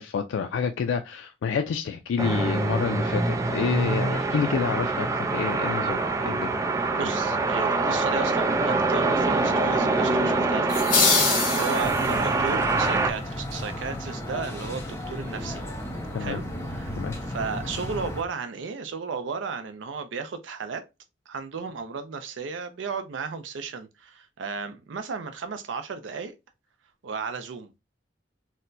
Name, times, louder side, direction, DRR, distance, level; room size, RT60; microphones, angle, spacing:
voice 1, 0.0-6.0 6.2-6.5 16.1-16.4 17.0-17.1, left 6 dB, 90° left, 0.3 m, -28 dB
sound 1, 2.2-13.1, right 3 dB, 15° right, 0.3 m, -25 dB
voice 2, 6.9-15.6 16.2-20.8 21.3-26.3 27.0-27.7, right 5 dB, 80° right, 0.4 m, -34 dB
sound 2, 10.7-12.3, left 4 dB, 50° left, 1.1 m, -23 dB
sound 3, 11.8-18.2, left 1 dB, 15° left, 0.7 m, -34 dB
4.2 x 2.1 x 2.6 m
head